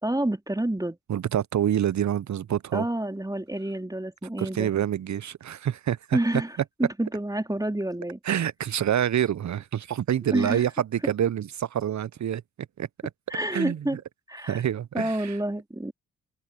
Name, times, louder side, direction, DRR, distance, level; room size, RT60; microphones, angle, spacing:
voice 1, 0.0-1.0 2.7-4.7 6.1-8.2 10.2-10.7 11.0-11.1 13.3-14.0 14.3-14.6 14.9-15.9, right 1 dB, 10° right, 3.8 m, -28 dB
voice 2, 1.1-2.9 4.4-6.2 8.3-12.4 12.8-12.9 13.5-14.0 14.5-15.4, right 10 dB, 45° right, 1.0 m, -27 dB
hypercardioid pair, 45°, 39 cm